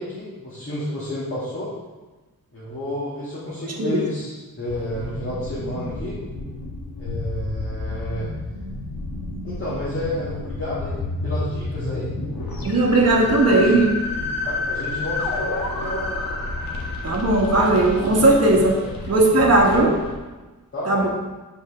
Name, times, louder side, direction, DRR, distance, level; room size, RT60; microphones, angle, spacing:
voice 1, 0.0-1.7 2.5-6.2 7.0-8.3 9.4-12.1 13.0-13.8 14.4-16.2 18.7-18.8 19.6-19.9 20.7-21.1, left 1 dB, 35° left, -9 dB, 1.8 m, -31 dB
sound 1, 4.7-20.1, left 2 dB, 80° left, 1.3 m, -30 dB
voice 2, 12.6-13.8 17.0-18.8 19.1-19.9 20.9-21.1, right 2 dB, 45° right, -1 dB, 1.2 m, -17 dB
5.2 x 4.8 x 6.3 m, 1.2 s
wide cardioid pair, 180°, 35 cm